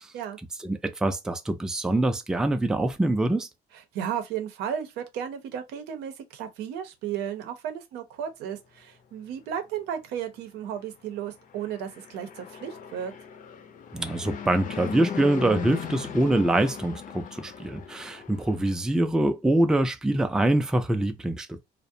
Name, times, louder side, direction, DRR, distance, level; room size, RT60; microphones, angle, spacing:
voice 1, 0.6-3.5 13.9-21.6, right 1 dB, 5° right, 0.3 m, -24 dB
voice 2, 3.7-13.1, right 9 dB, 90° right, 0.6 m, -34 dB
Fixed-wing aircraft airplane, 11.4-18.8, left 7 dB, 50° left, 0.5 m, -38 dB
2.4 x 2.0 x 2.6 m
cardioid pair, 110°, 17 cm